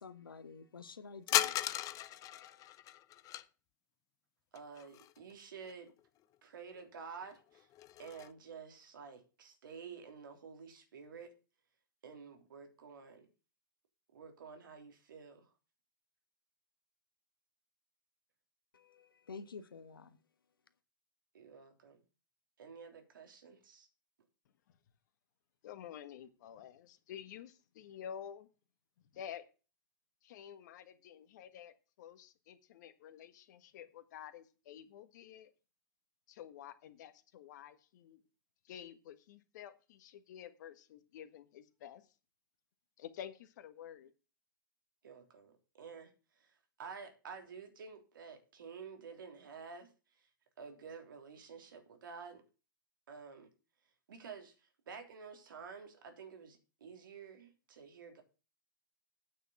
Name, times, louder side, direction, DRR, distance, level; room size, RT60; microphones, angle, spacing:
voice 1, 0.0-2.6 18.7-20.2, left 5 dB, 85° left, 1.3 m, -51 dB
sound 1, 1.3-3.4 4.5-5.3 5.6-5.7 6.7-6.8 7.2-8.3, left 13 dB, 30° left, 0.7 m, -36 dB
voice 2, 4.5-5.9 6.4-7.7 8.0-11.3 12.0-13.3 14.1-15.5 21.3-22.0 22.6-23.9 45.0-50.3 50.6-52.4 53.1-53.5 54.1-58.2, right 5 dB, 70° right, 3.2 m, -51 dB
voice 3, 25.6-28.5 29.1-29.4 30.2-35.5 36.3-38.2 38.6-42.1 43.0-44.1, left 9 dB, 55° left, 1.5 m, -50 dB
9.1 x 6.6 x 7.0 m
hypercardioid pair, 115°, 11 cm